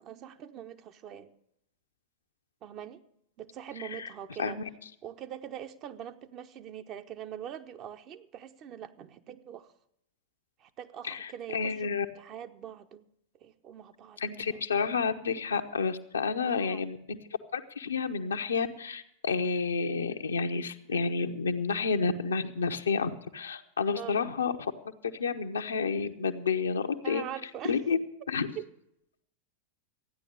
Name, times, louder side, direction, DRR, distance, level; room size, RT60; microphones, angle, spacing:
voice 1, 0.0-1.3 2.6-3.0 3.4-4.6 5.0-9.7 10.6-13.1 13.4-14.6 16.4-16.9 23.9-24.2 27.0-27.8 28.5-28.7, right 10 dB, 35° right, 8 dB, 0.8 m, -43 dB
voice 2, 4.4-4.7 11.0-12.1 14.2-17.2 17.5-24.5 25.0-27.2 27.6-28.0 28.3-28.5, left 5 dB, 70° left, 7 dB, 0.8 m, -30 dB
13.5 x 9.8 x 6.6 m, 0.76 s
figure-of-eight pair, 90°, 0 cm